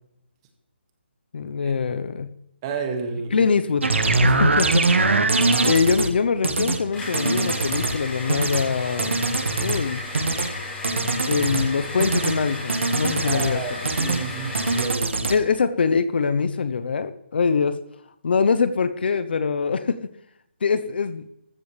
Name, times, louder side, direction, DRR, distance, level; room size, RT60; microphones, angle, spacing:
voice 1, 1.3-2.3 3.3-4.0 4.2-9.2 9.6-10.0 11.3-13.8 15.3-17.8 18.2-20.1 20.6-21.2, left 5 dB, 55° left, 11 dB, 1.0 m, -23 dB
voice 2, 2.6-3.5 4.3-4.4 13.2-15.5, right 5 dB, 25° right, 4 dB, 2.3 m, -31 dB
sound 1, 3.8-6.1 6.4-6.8 7.1-8.0 8.3-8.6 9.0-9.8 10.1-10.5 10.8-11.7 12.0-12.4 12.7-13.5 13.9-14.2 14.5-15.4, right 3 dB, 80° right, 1.9 m, -22 dB
sound 2, 6.9-14.9, left 2 dB, 15° left, 5.5 m, -34 dB
14.5 x 13.0 x 3.5 m, 0.79 s
figure-of-eight pair, 155°, 6 cm